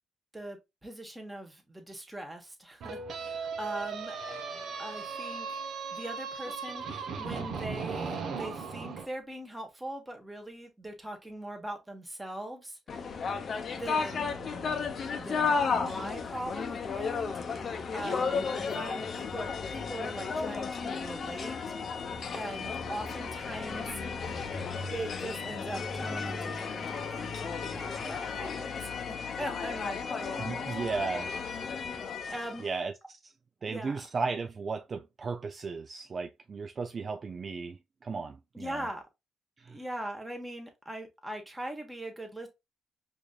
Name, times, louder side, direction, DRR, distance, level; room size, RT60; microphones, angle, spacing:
voice 1, 0.3-4.4 4.8-5.6 5.9-12.8 13.7-21.7 22.3-24.0 24.9-31.1 31.5-32.7 33.7-34.0 38.5-39.0 39.7-42.5, right 1 dB, 10° right, 1.2 m, -41 dB
sound 1, 2.8-9.1, right 5 dB, 65° right, 0.8 m, -37 dB
sound 2, 12.9-32.7, left 5 dB, 50° left, 0.6 m, -34 dB
voice 2, 30.4-31.3 32.6-32.9 33.2-33.3 33.6-38.9 39.6-39.8, right 4 dB, 40° right, 0.3 m, -35 dB
4.9 x 2.7 x 2.3 m
cardioid pair, 90°, 0 cm